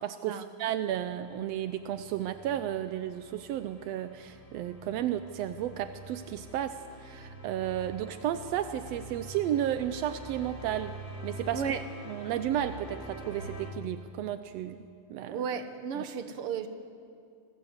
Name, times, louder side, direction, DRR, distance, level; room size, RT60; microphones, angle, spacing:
voice 1, 0.0-11.0 11.2-11.6 12.1-14.8 15.1-15.5 15.9-16.1, right 11 dB, 80° right, 10 dB, 1.5 m, -33 dB
sound 1, 0.9-13.7, equal, 30° left, 3.2 m, -46 dB
voice 2, 15.3-16.7, right 7 dB, 55° right, 8 dB, 1.9 m, -34 dB
26.5 x 21.0 x 8.0 m, 2.4 s
omnidirectional pair, 3.7 m